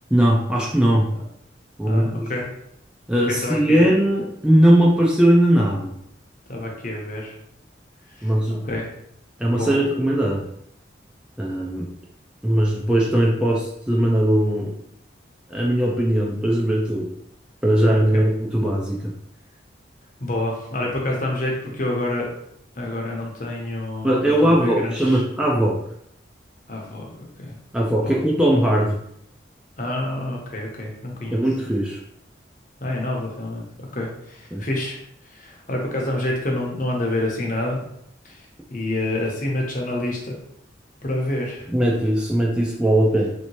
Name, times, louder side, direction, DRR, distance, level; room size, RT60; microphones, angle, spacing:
voice 1, 0.1-1.1 1.8-2.3 3.1-5.9 8.2-8.7 9.4-10.5 11.4-11.9 12.4-14.7 15.5-17.1 17.6-19.0 24.0-25.8 27.7-29.0 31.3-32.0 34.5-34.6 41.7-43.3, right 1 dB, 5° right, -3 dB, 0.3 m, -19 dB
voice 2, 1.9-2.5 3.3-3.9 6.5-7.3 8.2-8.3 8.6-8.9 9.5-9.8 17.9-18.2 20.2-22.3 22.7-25.2 26.7-27.1 27.4-27.6 28.0-28.2 29.8-31.4 32.8-33.6 33.9-35.0 35.3-37.8 38.2-38.4 38.7-40.3 41.0-41.6, left 1 dB, 45° left, -1 dB, 0.8 m, -27 dB
3.1 x 2.8 x 3.0 m, 0.73 s
head